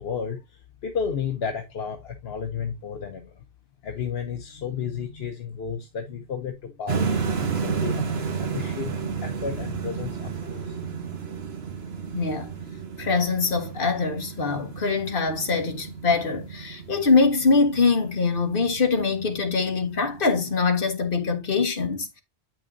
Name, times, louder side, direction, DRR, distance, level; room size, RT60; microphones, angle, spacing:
voice 1, 0.0-3.4 3.8-10.8, left 7 dB, 75° left, 1.1 m, -33 dB
sound 1, 6.9-20.9, right 6 dB, 80° right, 1.4 m, -32 dB
voice 2, 12.1-12.5 13.0-22.2, left 4 dB, 60° left, 1.7 m, -23 dB
8.8 x 6.0 x 2.7 m
omnidirectional pair, 1.0 m